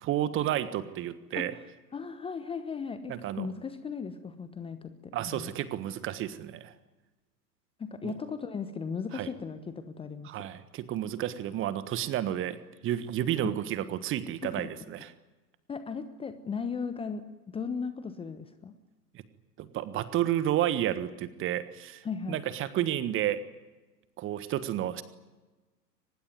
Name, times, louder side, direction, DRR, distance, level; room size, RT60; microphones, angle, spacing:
voice 1, 0.0-1.5 3.1-3.5 5.1-6.7 8.0-8.1 9.1-9.3 10.2-12.6 12.8-15.1 19.6-23.4 24.2-25.0, right 12 dB, 25° right, 14 dB, 1.4 m, -31 dB
voice 2, 1.9-5.5 7.8-10.5 14.4-14.7 15.7-17.2 17.5-18.7 22.0-22.4, left 5 dB, 10° left, 11 dB, 1.0 m, -37 dB
24.0 x 20.0 x 9.5 m, 1.2 s
figure-of-eight pair, 100°, 50 cm